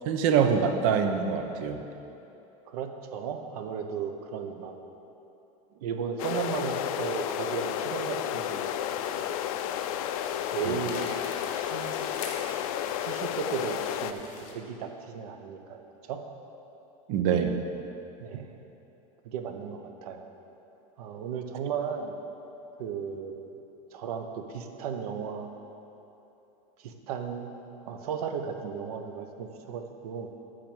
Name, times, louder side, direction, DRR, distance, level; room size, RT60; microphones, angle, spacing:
voice 1, 0.1-1.8 17.1-17.6, right 7 dB, 60° right, 7 dB, 0.8 m, -24 dB
voice 2, 2.7-4.8 5.7-8.7 9.1-9.2 10.5-11.1 11.5-12.1 12.4-12.6 13.0-14.3 14.5-16.2 18.2-18.6 19.2-20.2 21.0-22.1 22.8-23.5 23.9-25.5 26.8-27.5 27.8-30.3, right 7 dB, 80° right, 6 dB, 1.0 m, -35 dB
sound 1, 6.2-14.1, left 10 dB, 70° left, 0.5 m, -32 dB
sound 2, 8.8-14.5, left 4 dB, 45° left, 1.4 m, -45 dB
7.7 x 6.6 x 7.3 m, 3.0 s
supercardioid pair, 150°, 19 cm